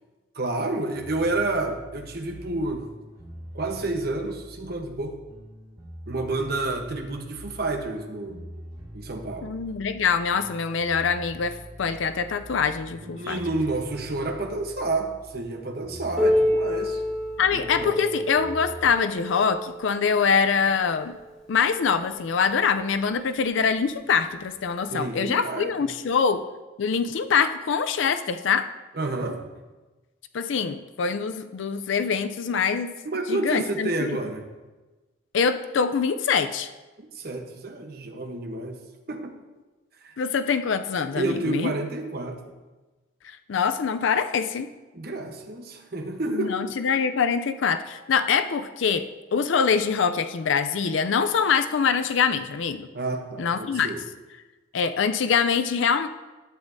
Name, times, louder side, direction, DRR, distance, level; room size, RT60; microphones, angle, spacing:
voice 1, 0.3-2.9 3.5-5.2 6.1-8.5 8.9-9.5 13.0-17.0 17.5-18.0 24.9-25.7 28.9-29.5 33.0-34.4 37.1-38.8 39.1-39.4 40.0-40.1 41.1-42.5 44.9-46.6 52.9-54.0, right 2 dB, 50° right, 4 dB, 0.9 m, -30 dB
sound 1, 0.9-18.9, equal, 20° right, 1.6 m, -44 dB
voice 2, 9.4-13.4 17.4-21.2 21.5-26.4 26.8-28.7 30.3-33.0 33.3-34.1 35.3-36.7 40.2-41.7 43.2-44.7 46.3-52.9 53.4-53.9 54.7-56.1, left 6 dB, 70° left, 10 dB, 0.4 m, -24 dB
Piano, 16.2-21.5 22.4-22.5 22.9-23.0 23.8-23.9 25.0-25.1, left 1 dB, ahead, 1.8 m, -28 dB
11.5 x 8.1 x 2.6 m, 1.2 s
head